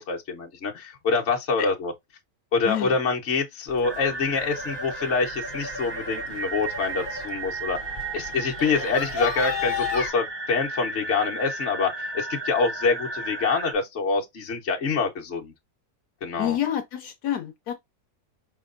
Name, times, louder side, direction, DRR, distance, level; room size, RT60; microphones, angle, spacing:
voice 1, 0.0-1.9 2.5-7.8 8.1-15.5 16.2-16.6, left 4 dB, 50° left, 1.3 m, -26 dB
voice 2, 2.6-3.0 16.4-17.7, left 11 dB, 75° left, 1.2 m, -28 dB
sound 1, 3.7-10.1, left 5 dB, 30° left, 1.6 m, -35 dB
sound 2, 3.8-13.7, right 3 dB, 40° right, 0.4 m, -34 dB
5.0 x 3.5 x 2.5 m
omnidirectional pair, 1.7 m